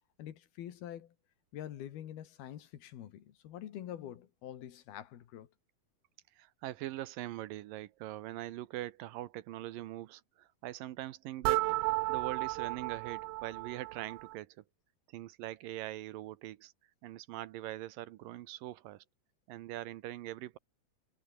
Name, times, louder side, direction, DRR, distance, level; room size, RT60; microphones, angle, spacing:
voice 1, 0.2-1.1 1.5-5.5, left 11 dB, 85° left, 3.8 m, -46 dB
voice 2, 6.4-14.6 15.1-16.7 17.0-19.0 19.5-20.6, right 15 dB, 75° right, 2.4 m, -42 dB
sound 1, 11.4-14.4, right 21 dB, 90° right, 2.5 m, -33 dB
omnidirectional pair, 4.3 m